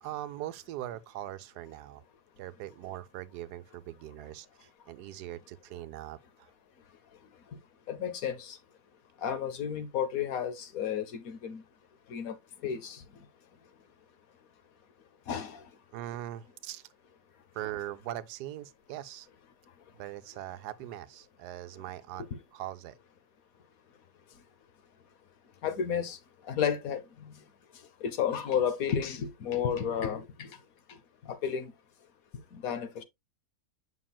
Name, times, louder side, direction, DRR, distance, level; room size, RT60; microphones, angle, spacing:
voice 1, 0.0-2.0 2.4-6.5 15.9-16.9 17.5-19.3 19.9-23.0, right 13 dB, 80° right, 1.1 m, -41 dB
voice 2, 7.9-8.6 9.2-11.6 12.1-12.4 12.6-13.0 15.3-15.6 25.6-26.2 26.4-27.3 28.0-30.6 31.2-31.7 32.5-33.0, left 8 dB, 65° left, 1.2 m, -32 dB
7.4 x 6.0 x 2.2 m
omnidirectional pair, 1.7 m